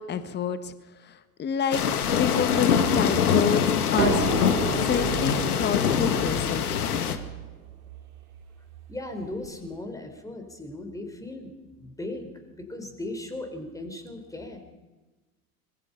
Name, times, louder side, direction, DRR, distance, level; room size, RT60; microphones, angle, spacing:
voice 1, 0.0-1.8 2.1-4.3 4.8-6.8, left 7 dB, 20° left, 12 dB, 1.5 m, -29 dB
sound 1, 1.7-7.2, left 7 dB, 75° left, 2.0 m, -24 dB
sound 2, 4.0-9.6, right 8 dB, 70° right, 2.9 m, -33 dB
voice 2, 8.9-14.6, left 2 dB, 5° left, 6 dB, 4.7 m, -37 dB
25.5 x 22.5 x 5.8 m, 1.2 s
hypercardioid pair, 85°, 45 cm